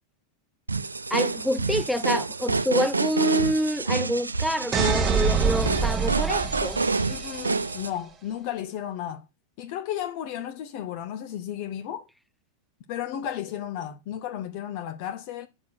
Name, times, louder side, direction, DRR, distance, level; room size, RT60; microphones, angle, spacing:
sound 1, 0.7-7.9, right 3 dB, 80° right, 0.6 m, -28 dB
voice 1, 1.1-6.8, equal, ahead, 0.6 m, -27 dB
sound 2, 4.7-7.6, right 6 dB, 25° right, 1.3 m, -26 dB
voice 2, 7.1-9.2 9.6-12.1 12.9-15.5, left 10 dB, 45° left, 1.1 m, -33 dB
8.6 x 6.3 x 6.3 m
figure-of-eight pair, 90°, 0 cm